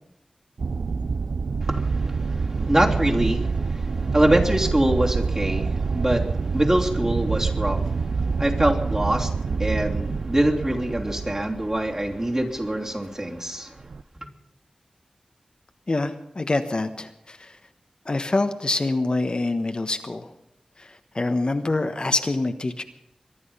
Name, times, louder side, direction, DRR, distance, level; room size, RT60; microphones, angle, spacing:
sound 1, 0.6-12.7 13.8-14.0, right 4 dB, 80° right, 0.5 m, -26 dB
voice 1, 1.6-13.8, right 1 dB, 25° right, -1 dB, 3.2 m, -24 dB
voice 2, 15.9-17.5 18.0-20.3 20.8-20.9 21.1-22.8, left 2 dB, 45° left, 7 dB, 1.2 m, -25 dB
23.5 x 11.0 x 5.6 m, 0.83 s
wide cardioid pair, 65°, 2 cm